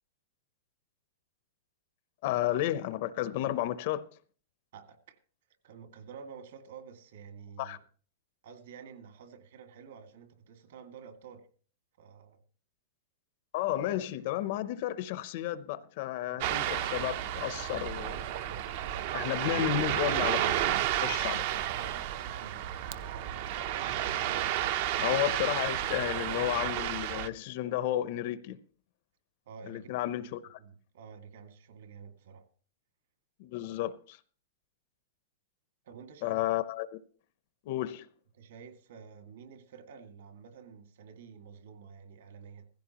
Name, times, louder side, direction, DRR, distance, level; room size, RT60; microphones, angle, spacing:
voice 1, 2.2-4.1 7.6-7.8 13.5-18.3 19.1-21.5 25.0-28.6 29.6-30.6 33.4-34.2 36.2-37.0 37.7-38.1, left 13 dB, 35° left, 0.7 m, -32 dB
voice 2, 4.7-5.2 5.6-7.8 8.4-11.5 12.0-12.4 16.3-16.4 21.6-23.7 29.5-30.3 30.6-32.5 35.8-36.4 38.3-42.7, right 6 dB, 55° right, 2.1 m, -50 dB
Ocean, 16.4-27.3, right 12 dB, 35° right, 0.7 m, -32 dB
16.5 x 15.5 x 2.9 m
supercardioid pair, 180°, 0 cm